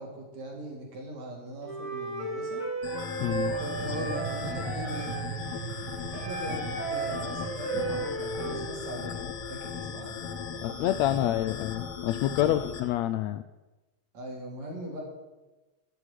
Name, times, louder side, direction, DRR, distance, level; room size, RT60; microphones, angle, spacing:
voice 1, 0.0-2.6 3.6-5.1 6.1-6.6 6.9-9.2 9.5-10.2 10.5-11.2 12.4-12.7 14.1-15.0, right 1 dB, 60° right, -1 dB, 4.6 m, -40 dB
Wind instrument woodwind instrument, 1.6-5.3 6.1-8.7, right 3 dB, 30° right, 4.3 m, -34 dB
sound 1, 2.8-12.8, left 7 dB, 65° left, 1.6 m, -38 dB
voice 2, 3.2-3.5 10.6-13.4, left 13 dB, 80° left, 12 dB, 1.6 m, -27 dB
sound 2, 3.3-11.0, right 10 dB, 85° right, 1.2 m, -41 dB
13.5 x 8.1 x 9.4 m, 1.1 s
omnidirectional pair, 3.6 m